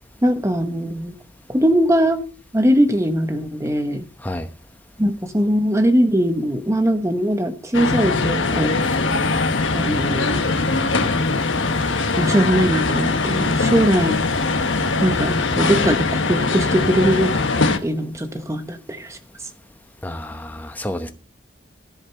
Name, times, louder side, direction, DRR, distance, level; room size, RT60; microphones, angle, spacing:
voice 1, 0.2-1.1 1.5-2.2 2.5-4.0 5.0-8.9 9.7-10.4 12.2-14.2 15.0-19.2, equal, 15° right, 1.0 m, -20 dB
sound 1, 7.7-17.8, left 3 dB, 80° left, 1.2 m, -21 dB
sound 2, 8.2-16.0, left 3 dB, 55° left, 3.2 m, -40 dB
voice 2, 20.0-21.1, left 1 dB, 10° left, 1.0 m, -29 dB
14.0 x 5.1 x 7.6 m
head